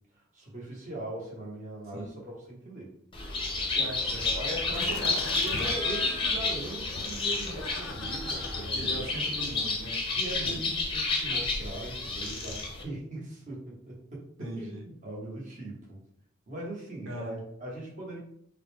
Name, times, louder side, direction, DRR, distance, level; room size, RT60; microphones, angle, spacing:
voice 1, 0.1-3.0 3.7-3.8 4.3-5.0 5.3-9.1 10.2-16.0 16.5-18.2, right 1 dB, 35° right, -4 dB, 1.1 m, -40 dB
Bird, 3.1-12.8, left 3 dB, 25° left, 0.6 m, -30 dB
voice 2, 3.7-4.3 4.8-5.3 8.7-10.6 14.4-14.8 17.1-17.4, right 1 dB, 80° right, -1 dB, 1.0 m, -39 dB
Laughter, 4.7-9.9, left 3 dB, 80° left, 0.5 m, -42 dB
3.7 x 2.1 x 3.2 m, 0.70 s
head